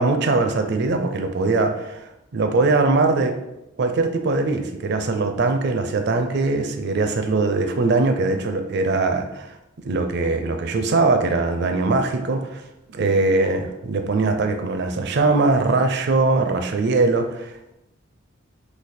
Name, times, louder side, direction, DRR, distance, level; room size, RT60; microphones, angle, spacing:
voice 1, 0.0-3.4 3.8-9.5 9.8-12.6 12.9-17.7, right 3 dB, 55° right, 6 dB, 0.5 m, -21 dB
4.0 x 2.8 x 4.2 m, 0.91 s
head